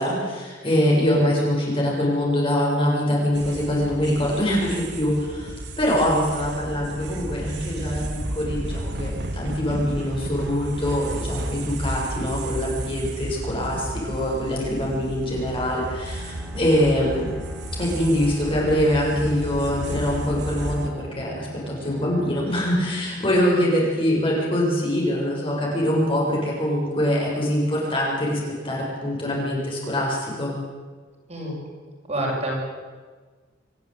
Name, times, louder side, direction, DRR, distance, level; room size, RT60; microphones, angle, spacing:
voice 1, 0.0-17.3 17.8-28.4 28.6-30.5, equal, 30° left, -3 dB, 7.2 m, -24 dB
sound 1, 3.3-20.9, right 1 dB, 60° right, 2.3 m, -33 dB
Bowed string instrument, 15.5-23.5, right 1 dB, 5° left, 5.9 m, -41 dB
voice 2, 32.1-32.6, right 1 dB, 35° right, -3 dB, 7.4 m, -28 dB
26.0 x 15.0 x 9.3 m, 1.4 s
head